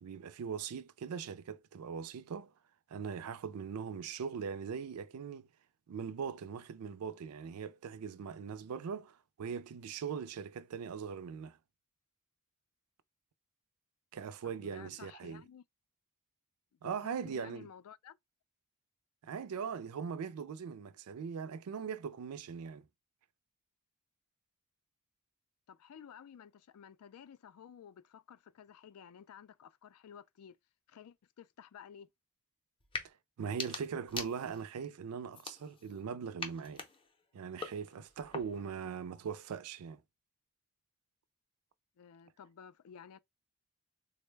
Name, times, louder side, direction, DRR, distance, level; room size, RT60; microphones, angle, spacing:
voice 1, 0.0-2.5 2.9-5.5 5.9-11.6 14.1-15.4 16.8-17.7 19.2-22.8 33.0-36.8 37.3-40.0, right 6 dB, 75° right, 0.4 m, -40 dB
voice 2, 14.4-15.6 16.7-18.2 25.7-30.6 30.9-32.1 42.0-43.2, left 8 dB, 70° left, 0.3 m, -54 dB
sound 1, 32.8-33.1 33.4-34.8 35.3-36.0 36.4-38.8, left 4 dB, 25° left, 0.6 m, -44 dB
3.7 x 2.1 x 3.2 m
head